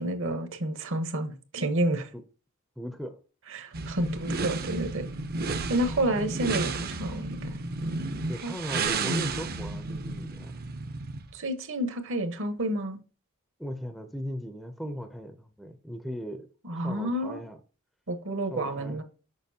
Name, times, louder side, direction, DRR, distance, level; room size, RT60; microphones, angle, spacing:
voice 1, 0.0-2.1 3.5-5.0 5.7-7.6 8.4-8.5 11.3-13.0 16.6-17.4 18.1-19.0, right 1 dB, 60° right, 1.1 m, -30 dB
voice 2, 2.8-3.2 5.4-5.9 8.2-10.5 13.6-16.5 16.8-17.6 18.5-19.0, equal, ahead, 0.5 m, -38 dB
sound 1, 3.7-11.3, right 3 dB, 45° right, 0.6 m, -32 dB
6.7 x 5.5 x 2.7 m
head